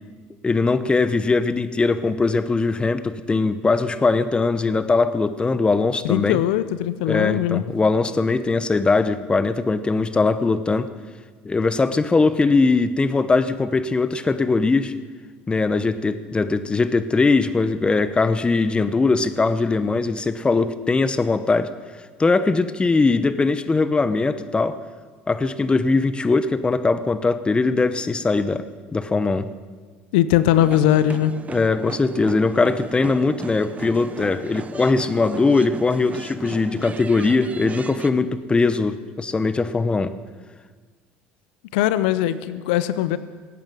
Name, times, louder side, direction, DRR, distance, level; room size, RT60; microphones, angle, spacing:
voice 1, 0.4-6.4 7.0-10.9 11.4-14.9 15.5-21.7 22.2-24.8 25.3-28.6 28.9-29.5 31.5-40.1, left 3 dB, 20° left, 13 dB, 0.9 m, -20 dB
voice 2, 6.0-7.7 30.1-31.3 41.7-43.2, left 12 dB, 85° left, 14 dB, 0.6 m, -20 dB
sound 1, 30.5-38.1, right 5 dB, 30° right, 0.8 m, -36 dB
17.0 x 9.0 x 7.7 m, 1.5 s
supercardioid pair, 95°, 5 cm